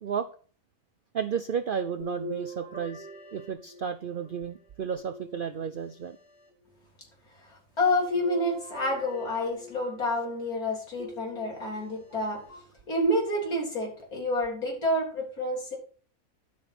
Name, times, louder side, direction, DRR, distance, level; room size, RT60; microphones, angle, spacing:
voice 1, 1.1-6.2 12.1-12.2, right 7 dB, 70° right, 12 dB, 0.5 m, -33 dB
sound 1, 2.0-4.3 5.0-6.0 8.0-10.1 11.0-11.9 12.5-12.6 14.0-14.1, left 1 dB, 5° right, 2.8 m, -40 dB
voice 2, 7.8-12.6 12.9-15.8, left 1 dB, 75° left, -1 dB, 4.0 m, -28 dB
12.5 x 6.4 x 4.2 m, 0.42 s
omnidirectional pair, 1.6 m